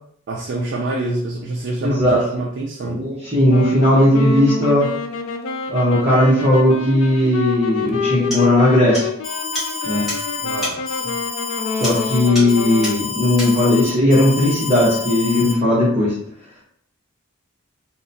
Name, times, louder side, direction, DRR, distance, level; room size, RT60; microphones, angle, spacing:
voice 1, 0.3-3.1 10.4-11.2, right 2 dB, 55° right, 0 dB, 0.3 m, -26 dB
voice 2, 1.8-2.2 2.8-4.9 5.7-9.1 9.8-10.1 11.8-16.1, left 1 dB, 25° right, -10 dB, 0.7 m, -16 dB
Wind instrument woodwind instrument, 3.5-13.0, left 4 dB, 75° left, 0.4 m, -27 dB
sound 1, 7.7-7.8 8.3-8.5 8.9-9.1 9.5-9.7 10.1-10.2 10.6-10.8 11.8-12.1 12.3-12.6 12.8-13.0 13.4-13.6, equal, ahead, 1.0 m, -28 dB
Alarm, 9.2-15.5, left 5 dB, 40° left, 0.7 m, -29 dB
2.7 x 2.1 x 2.6 m, 0.65 s
head